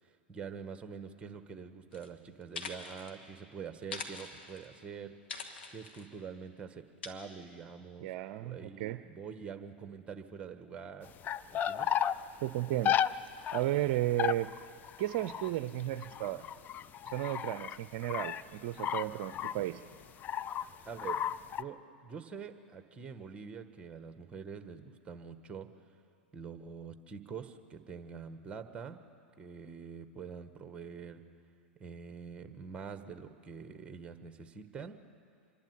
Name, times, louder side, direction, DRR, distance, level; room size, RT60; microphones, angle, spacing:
voice 1, 0.0-5.2 5.7-8.1 8.4-11.1 11.5-11.9 20.8-25.7 26.3-29.1 29.4-31.2 31.8-35.0, right 6 dB, 20° right, 8 dB, 1.5 m, -45 dB
sound 1, 1.9-2.1 2.4-3.1 3.8-4.7 5.3-6.1 7.0-7.1, left 5 dB, 75° left, 1.9 m, -43 dB
voice 2, 8.0-9.0 12.4-13.0 13.5-14.5 15.0-16.4 17.1-19.8, right 14 dB, 55° right, 11 dB, 0.6 m, -34 dB
sound 2, 11.1-12.1 12.8-13.1 13.4-13.6 14.2-17.8 18.0-18.4 18.7-19.8 20.2-20.7 21.0-21.6, left 9 dB, 30° left, 0.5 m, -33 dB
25.5 x 11.5 x 9.4 m, 2.4 s
hypercardioid pair, 100°, 6 cm